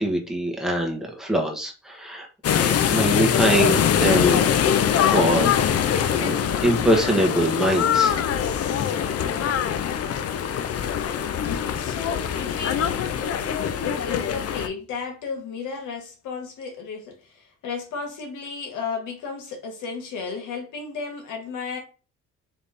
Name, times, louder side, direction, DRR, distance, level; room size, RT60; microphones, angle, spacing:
voice 1, 0.0-2.3 2.5-8.2, right 1 dB, ahead, 1.2 m, -24 dB
sound 1, 2.4-14.7, left 8 dB, 55° left, 0.6 m, -23 dB
voice 2, 11.0-21.8, left 5 dB, 85° left, 1.6 m, -34 dB
3.6 x 3.0 x 4.1 m
cardioid pair, 90°, 30 cm